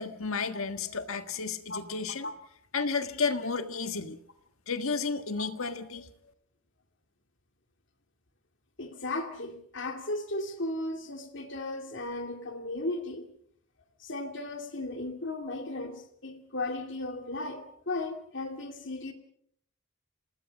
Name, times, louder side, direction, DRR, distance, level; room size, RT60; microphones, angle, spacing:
voice 1, 0.0-2.3 2.7-4.2 4.7-6.1, left 4 dB, 70° left, 8 dB, 1.7 m, -32 dB
voice 2, 5.4-5.7 8.8-13.3 14.0-19.1, left 2 dB, 55° left, 4 dB, 2.4 m, -36 dB
28.5 x 19.5 x 5.3 m, 0.67 s
head